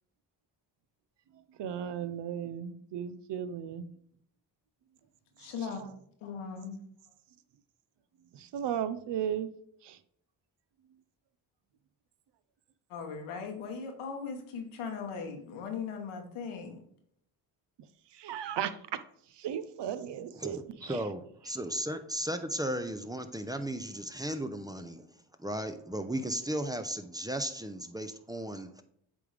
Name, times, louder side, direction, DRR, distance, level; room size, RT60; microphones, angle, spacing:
voice 1, 1.6-3.9 5.6-5.9 8.3-9.5 9.8-10.0 18.1-19.0 19.4-21.0 21.4-21.5, right 9 dB, 60° right, 13 dB, 0.7 m, -36 dB
voice 2, 5.4-5.9 6.2-6.8 12.9-16.8, left 5 dB, 85° left, 4 dB, 1.2 m, -39 dB
voice 3, 20.3-25.0 25.4-28.8, right 1 dB, 10° right, 8 dB, 0.6 m, -35 dB
8.4 x 3.5 x 3.3 m, 0.68 s
supercardioid pair, 65°, 48 cm